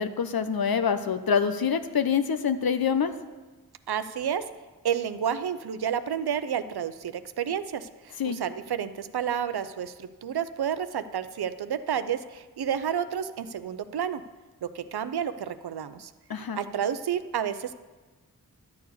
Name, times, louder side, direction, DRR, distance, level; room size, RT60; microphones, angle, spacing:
voice 1, 0.0-3.1 8.2-8.4 16.3-16.6, left 6 dB, 65° left, 10 dB, 0.8 m, -26 dB
voice 2, 3.9-4.4 4.8-14.2 14.6-16.1 16.5-17.7, right 8 dB, 75° right, 12 dB, 0.6 m, -30 dB
12.0 x 4.6 x 8.2 m, 1.2 s
cardioid pair, 40°, 38 cm